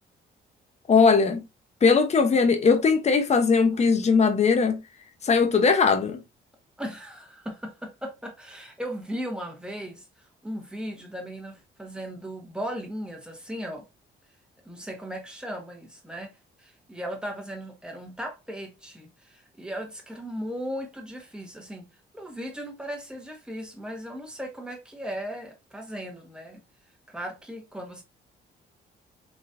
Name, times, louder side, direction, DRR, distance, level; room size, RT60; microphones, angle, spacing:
voice 1, 0.9-1.4 1.8-4.8 5.2-6.2, left 5 dB, 35° left, 0.8 m, -20 dB
voice 2, 6.8-10.0 10.4-13.8 14.6-16.3 16.6-21.9 22.1-26.6 27.1-28.0, equal, 5° right, 1.4 m, -37 dB
4.0 x 3.1 x 2.6 m
cardioid pair, 90°, 20 cm